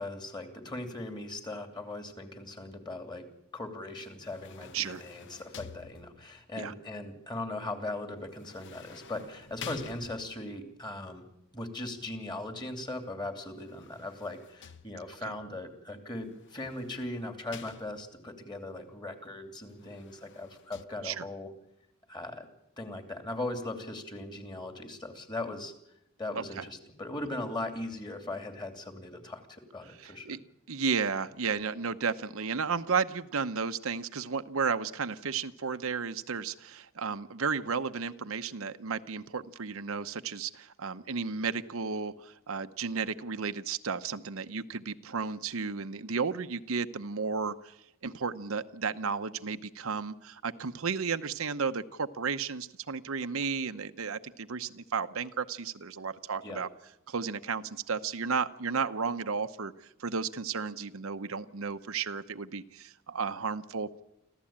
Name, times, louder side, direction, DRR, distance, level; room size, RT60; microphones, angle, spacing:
voice 1, 0.0-3.3 3.5-11.3 11.5-21.5 22.1-22.5 22.8-25.7 26.2-30.4 56.4-56.6, left 2 dB, 20° left, 6 dB, 2.8 m, -39 dB
sound 1, 4.0-6.4 8.3-10.6 13.4-15.3 16.3-18.3 19.6-20.8, left 6 dB, 55° left, 0.8 m, -50 dB
voice 2, 30.0-30.4 30.7-47.7 48.0-56.7 57.1-59.7 60.0-64.0, right 5 dB, 75° right, 9 dB, 0.8 m, -33 dB
25.5 x 15.0 x 8.8 m, 0.82 s
head